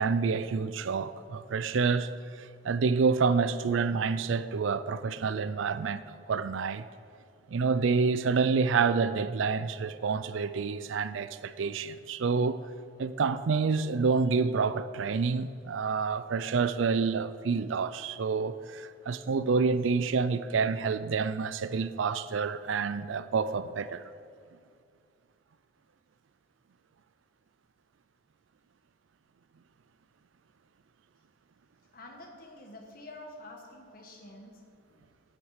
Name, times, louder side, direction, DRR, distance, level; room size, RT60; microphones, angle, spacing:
voice 1, 0.0-2.1 2.4-6.0 6.3-6.8 7.5-12.6 13.0-24.1, right 5 dB, 85° right, 0.4 m, -28 dB
voice 2, 31.9-34.6 34.9-35.1, left 1 dB, 50° left, 1.3 m, -48 dB
11.0 x 7.2 x 4.9 m
head